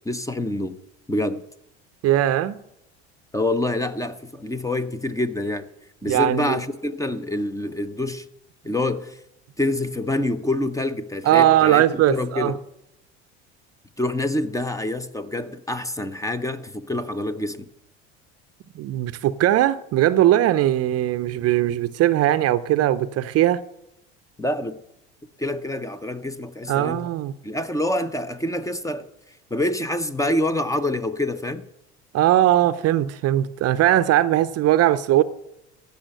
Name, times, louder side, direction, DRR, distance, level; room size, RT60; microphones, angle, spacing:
voice 1, 0.0-0.8 1.1-1.4 3.3-5.7 6.0-8.3 8.6-9.2 9.6-12.6 14.0-17.6 24.4-24.8 25.4-27.1 27.4-29.0 29.5-31.6, left 1 dB, 10° left, 0.8 m, -26 dB
voice 2, 2.0-2.6 6.0-6.6 11.2-12.6 18.7-23.6 26.7-27.3 32.1-35.2, right 13 dB, 45° right, 0.7 m, -19 dB
15.0 x 5.7 x 7.7 m
hypercardioid pair, 75°, 33 cm